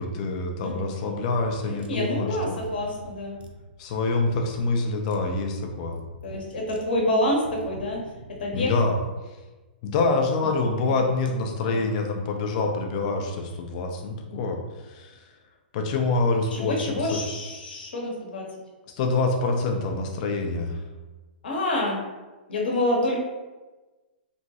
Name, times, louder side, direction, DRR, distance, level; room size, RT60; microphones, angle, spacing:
voice 1, 0.0-2.6 3.8-6.0 8.5-9.0 9.8-15.3 15.7-16.8 17.1-17.2 19.0-20.8, left 3 dB, 45° left, 3 dB, 0.5 m, -26 dB
sound 1, 1.3-8.7, right 3 dB, 70° right, 0.4 m, -45 dB
voice 2, 1.8-3.4 6.2-8.0 8.4-8.7 11.5-11.9 16.5-18.4 21.4-22.0 22.5-23.2, left 1 dB, 65° left, -1 dB, 0.9 m, -27 dB
3.0 x 2.2 x 2.8 m, 1.2 s
hypercardioid pair, 120°, 5 cm